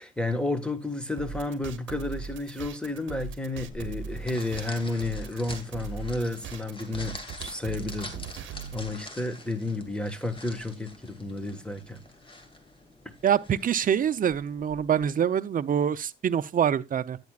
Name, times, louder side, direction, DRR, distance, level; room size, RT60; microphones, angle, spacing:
voice 1, 0.0-12.0 13.0-13.1, left 2 dB, 5° left, 1.4 m, -32 dB
sound 1, 1.2-8.8, right 7 dB, 70° right, 0.8 m, -39 dB
sound 2, 3.7-15.1, left 2 dB, 25° left, 1.9 m, -46 dB
voice 2, 13.2-17.2, right 8 dB, 45° right, 0.6 m, -25 dB
10.5 x 9.5 x 2.4 m
cardioid pair, 90°, 20 cm